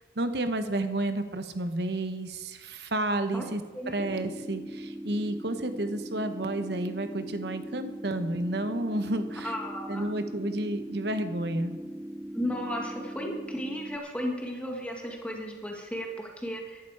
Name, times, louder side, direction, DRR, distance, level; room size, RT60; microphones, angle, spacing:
voice 1, 0.0-9.5 9.9-11.7, right 1 dB, 60° right, 9 dB, 1.0 m, -31 dB
sound 1, 4.0-14.0, right 1 dB, 10° right, 0.4 m, -40 dB
voice 2, 9.4-10.1 12.3-16.8, equal, 5° left, 0 dB, 1.6 m, -34 dB
14.5 x 12.0 x 4.8 m, 1.4 s
head